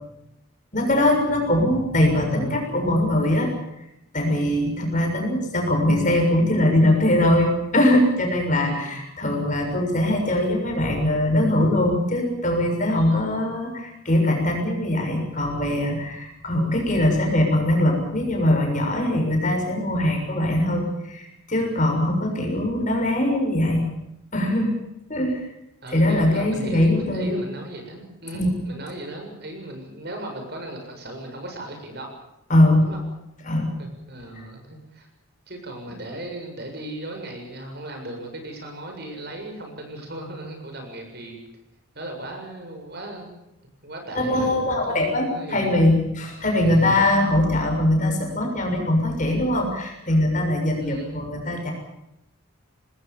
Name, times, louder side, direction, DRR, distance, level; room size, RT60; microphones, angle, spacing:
voice 1, 0.7-3.5 4.1-23.9 24.3-24.8 25.1-25.4 25.9-27.4 28.3-28.5 32.5-32.9 33.4-33.7 44.1-51.7, left 1 dB, 35° left, 3 dB, 6.7 m, -21 dB
voice 2, 8.7-9.0 25.8-32.1 32.8-33.0 33.8-35.1 35.5-41.4 41.9-43.3 43.8-45.9 46.6-46.9 50.8-51.2, right 1 dB, 50° right, 3 dB, 7.3 m, -37 dB
26.5 x 20.0 x 7.1 m, 0.86 s
head